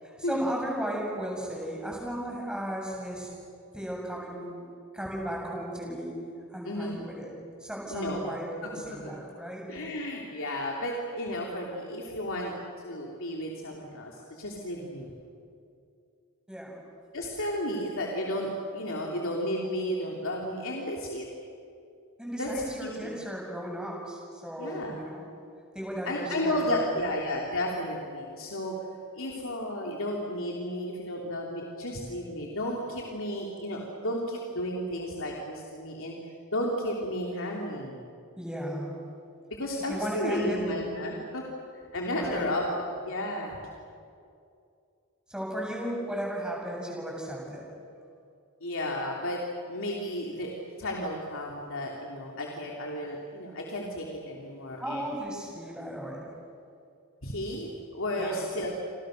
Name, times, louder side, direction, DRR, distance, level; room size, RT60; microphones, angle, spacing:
voice 1, 0.0-3.3 3.7-4.5 4.9-6.1 6.5-7.3 7.6-9.7 16.5-16.8 22.2-25.2 25.7-26.9 38.4-39.0 39.9-40.6 42.2-42.4 45.3-47.6 54.8-56.3 58.2-58.4, equal, 5° right, -2 dB, 7.6 m, -35 dB
voice 2, 6.6-7.0 7.9-8.2 8.6-9.0 9.7-15.1 17.1-21.2 22.4-23.1 24.6-25.0 26.0-28.7 29.1-36.1 36.5-38.0 39.5-41.4 41.7-43.6 48.6-49.4 49.7-50.5 50.8-55.1 57.2-58.7, left 1 dB, 65° left, -1 dB, 3.2 m, -33 dB
30.0 x 26.0 x 6.7 m, 2.5 s
head